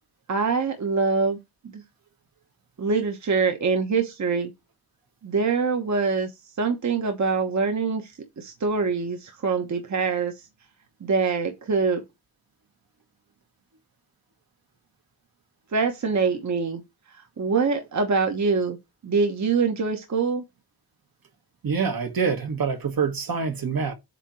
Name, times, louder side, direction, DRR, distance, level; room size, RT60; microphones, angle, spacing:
voice 1, 0.3-1.4 1.6-1.8 2.8-4.5 5.2-6.3 6.6-10.3 11.0-12.0 15.7-16.8 17.4-18.8 19.0-20.4, right 4 dB, 45° right, 1.1 m, -24 dB
voice 2, 21.6-23.9, right 5 dB, 60° right, 1.4 m, -26 dB
8.2 x 2.8 x 4.7 m
wide cardioid pair, 160°, 39 cm